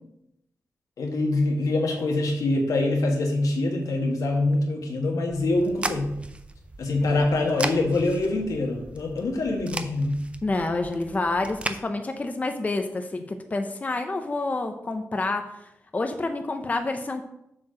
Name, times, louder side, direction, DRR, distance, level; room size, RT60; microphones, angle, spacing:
voice 1, 1.0-6.1 6.8-10.2, left 2 dB, 85° left, 0 dB, 1.8 m, -24 dB
sound 1, 5.3-11.8, right 2 dB, 20° right, 0.5 m, -37 dB
voice 2, 10.4-17.2, left 2 dB, 25° left, 6 dB, 0.6 m, -28 dB
7.5 x 4.5 x 6.4 m, 0.82 s
wide cardioid pair, 145°, 6 cm